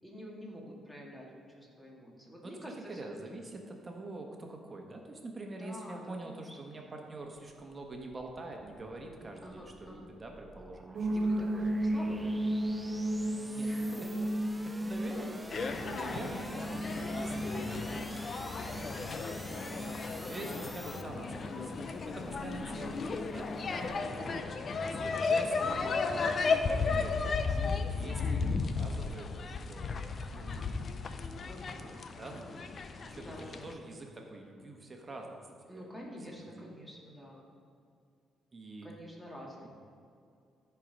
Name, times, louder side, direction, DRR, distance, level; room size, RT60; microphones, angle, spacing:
voice 1, 0.0-3.1 5.6-6.5 9.4-10.1 11.1-12.5 13.6-14.1 15.0-15.4 16.0-16.3 20.2-20.5 23.7-24.5 31.5-32.0 33.2-33.7 35.7-37.4 38.8-39.7, equal, 10° left, -3 dB, 2.2 m, -47 dB
voice 2, 2.4-11.2 11.5-11.7 13.5-13.8 14.6-15.4 15.9-19.9 20.3-23.8 24.8-27.1 27.5-29.9 30.3-30.7 32.2-35.4 35.7-36.6 38.5-38.9 39.5-39.7, right 2 dB, 30° right, 1 dB, 1.4 m, -46 dB
sound 1, 7.6-21.0, right 1 dB, 5° right, 0.6 m, -49 dB
sound 2, 10.9-24.0, right 1 dB, 60° right, 0.7 m, -36 dB
sound 3, 15.5-33.7, left 4 dB, 45° left, 0.6 m, -34 dB
13.5 x 4.7 x 5.3 m, 2.4 s
cardioid pair, 90°, 0 cm